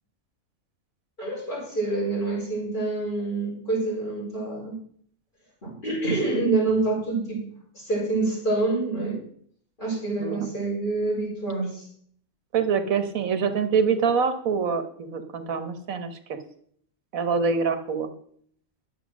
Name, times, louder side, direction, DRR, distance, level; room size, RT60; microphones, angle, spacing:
voice 1, 1.2-4.8 5.6-7.4 7.7-9.2 9.8-11.9, right 3 dB, 35° left, -4 dB, 4.8 m, -27 dB
voice 2, 12.5-16.4 17.1-18.1, right 5 dB, 85° right, 9 dB, 1.5 m, -25 dB
10.5 x 6.9 x 6.1 m, 0.62 s
omnidirectional pair, 1.4 m